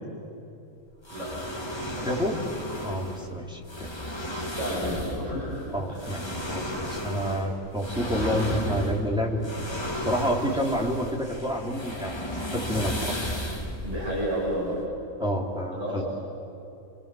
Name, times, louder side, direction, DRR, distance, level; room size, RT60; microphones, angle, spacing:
sound 1, 1.0-14.9, equal, 20° left, 2.1 m, -34 dB
voice 1, 2.0-2.4 2.8-3.9 5.7-9.5 10.0-12.2 12.5-13.2 15.2-16.0, equal, 5° right, -2 dB, 3.2 m, -29 dB
voice 2, 4.6-5.6 5.9-6.1 13.8-14.8 15.7-16.0, equal, 65° right, -6 dB, 7.4 m, -31 dB
29.0 x 25.0 x 7.7 m, 2.8 s
omnidirectional pair, 1.4 m